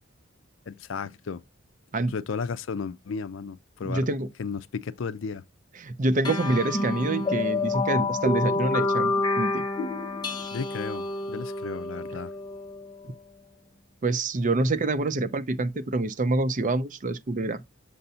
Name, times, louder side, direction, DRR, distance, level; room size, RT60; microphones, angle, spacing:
voice 1, 0.7-1.4 2.1-4.1 4.4-5.4 10.5-12.3, left 5 dB, 70° left, 0.5 m, -34 dB
voice 2, 3.8-4.3 5.8-9.6 14.0-17.6, right 2 dB, 40° right, 0.6 m, -26 dB
sound 1, 6.2-13.1, left 3 dB, 20° left, 0.7 m, -28 dB
6.8 x 2.6 x 5.5 m
head